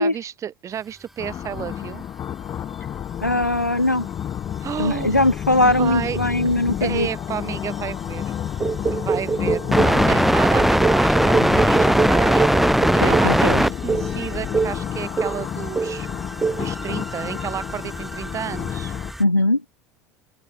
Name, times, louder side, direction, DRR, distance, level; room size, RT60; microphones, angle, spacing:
voice 1, 0.0-2.0 4.6-5.3 5.6-6.5 6.8-8.2 8.9-16.1 16.6-18.9, right 9 dB, 35° right, 4.8 m, -31 dB
sound 1, 1.2-19.1, left 9 dB, 35° left, 3.4 m, -30 dB
voice 2, 3.2-4.1 4.8-7.1 9.7-10.0 13.0-13.6 19.2-19.6, left 2 dB, 90° left, 1.5 m, -20 dB
sound 2, 5.6-5.7 8.8-9.0 9.7-19.2, equal, ahead, 1.6 m, -21 dB
sound 3, 8.6-10.0 10.6-13.4 13.9-14.1 14.5-14.8 15.2-15.5 15.8-16.1 16.4-16.7, right 5 dB, 15° right, 0.8 m, -24 dB
open air
figure-of-eight pair, 70°, 9 cm